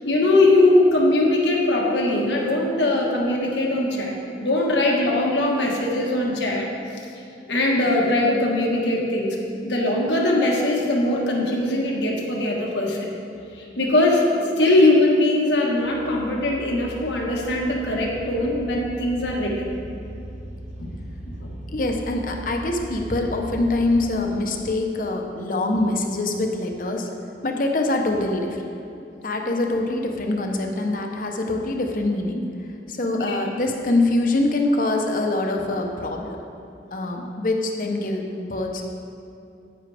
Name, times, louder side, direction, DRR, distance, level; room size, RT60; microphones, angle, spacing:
voice 1, 0.0-4.1 4.4-6.7 7.0-7.1 7.5-9.4 9.6-13.1 13.6-14.3 14.6-19.7 20.8-21.0 21.2-21.5 33.1-33.4, left 2 dB, 90° left, -2 dB, 1.5 m, -21 dB
sound 1, 15.8-24.1, right 1 dB, 40° right, 0.8 m, -38 dB
voice 2, 21.7-27.1 27.4-28.7 29.2-32.4 32.9-36.4 36.9-38.8, left 2 dB, 50° left, 2 dB, 0.9 m, -24 dB
10.0 x 8.8 x 3.4 m, 2.6 s
head